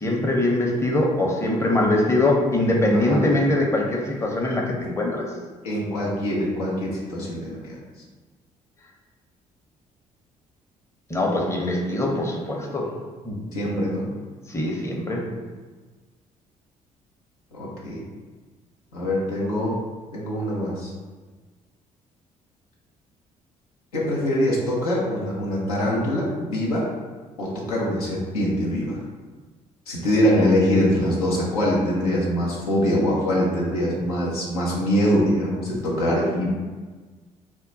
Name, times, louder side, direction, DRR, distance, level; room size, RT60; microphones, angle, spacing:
voice 1, 0.0-5.2 11.1-12.9 13.2-13.4 14.5-15.3, left 1 dB, 15° left, -1 dB, 0.6 m, -22 dB
voice 2, 5.6-7.8 13.5-14.1 17.5-18.0 18.9-19.8 20.1-20.9 23.9-26.9 27.4-29.0 29.9-36.5, equal, 85° left, -5 dB, 0.6 m, -23 dB
2.2 x 2.1 x 3.7 m, 1.4 s
hypercardioid pair, 50°, 18 cm